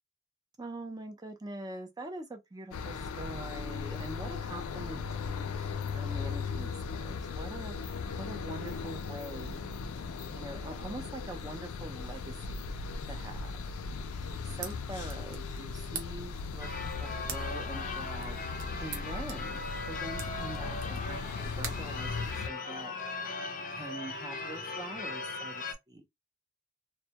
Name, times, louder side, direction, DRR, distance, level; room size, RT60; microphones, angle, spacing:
voice 1, 0.6-9.6 10.3-12.7 13.1-13.6 14.2-16.7 17.0-19.6 19.9-23.1 23.6-26.0, right 2 dB, 20° right, 0.5 m, -44 dB
sound 1, 2.7-22.5, left 5 dB, 90° left, 0.4 m, -38 dB
sound 2, 14.3-22.8, right 6 dB, 60° right, 0.7 m, -47 dB
Church bell / Car / Alarm, 16.6-25.7, left 3 dB, 40° left, 0.6 m, -39 dB
2.1 x 2.1 x 2.8 m
head